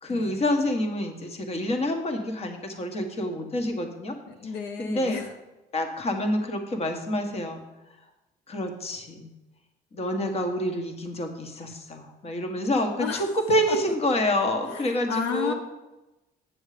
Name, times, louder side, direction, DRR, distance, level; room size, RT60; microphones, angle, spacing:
voice 1, 0.0-4.1 4.8-5.2 5.7-7.6 8.5-9.3 9.9-15.5, left 1 dB, 35° left, 5 dB, 1.4 m, -27 dB
voice 2, 4.3-5.3 13.0-13.3 13.7-13.8 14.7-15.5, left 6 dB, 85° left, 5 dB, 0.9 m, -32 dB
9.0 x 6.4 x 5.0 m, 1.0 s
cardioid pair, 110°, 17 cm